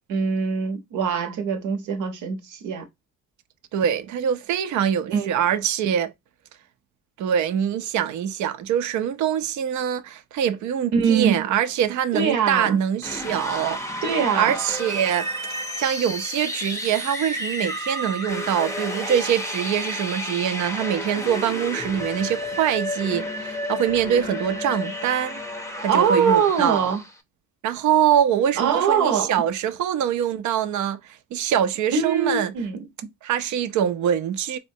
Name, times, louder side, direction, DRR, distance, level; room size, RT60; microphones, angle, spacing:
voice 1, 0.1-2.8 5.1-5.4 10.9-11.5 12.1-12.8 14.0-14.6 25.9-27.0 28.6-29.3 31.9-32.8, right 6 dB, 90° right, 0.9 m, -22 dB
voice 2, 3.7-6.1 7.2-13.8 14.3-15.3 15.8-25.4 25.8-27.0 27.6-31.0 31.3-32.5 33.2-34.6, right 9 dB, 70° right, 0.5 m, -24 dB
sound 1, 13.0-27.2, left 1 dB, 10° left, 0.5 m, -31 dB
4.4 x 2.1 x 2.6 m
cardioid pair, 90°, 30 cm